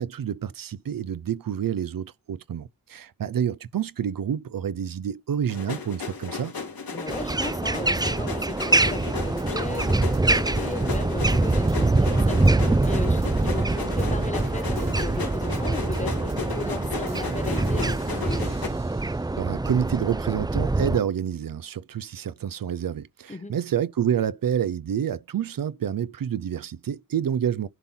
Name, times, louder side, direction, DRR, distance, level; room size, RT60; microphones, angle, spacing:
voice 1, 0.0-6.5 19.4-27.7, right 9 dB, 75° right, 0.7 m, -28 dB
sound 1, 5.5-18.7, left 5 dB, 85° left, 2.9 m, -35 dB
voice 2, 6.9-18.5 23.3-23.6, left 2 dB, 20° left, 1.5 m, -36 dB
sound 2, 7.1-21.0, right 2 dB, 10° right, 0.5 m, -24 dB
sound 3, 9.0-14.1 14.4-19.6 20.0-21.0, right 3 dB, 50° right, 1.6 m, -43 dB
11.0 x 3.8 x 5.9 m
cardioid pair, 70°, 35 cm